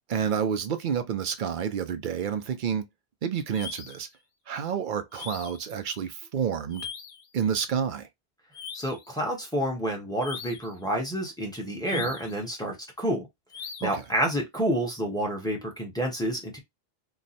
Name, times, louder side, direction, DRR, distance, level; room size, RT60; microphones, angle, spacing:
voice 1, 0.1-2.9 3.2-4.1 4.5-6.9 7.3-8.1 11.9-12.1 13.8-14.0, right 7 dB, 55° right, 0.7 m, -29 dB
sound 1, 3.5-4.1 5.1-5.7 6.7-7.3 8.5-9.1 10.2-10.8 11.9-12.4 13.5-14.1, left 6 dB, 85° left, 0.9 m, -41 dB
voice 2, 8.7-13.3 13.8-16.6, equal, 5° left, 1.1 m, -29 dB
3.1 x 2.3 x 4.1 m
omnidirectional pair, 1.1 m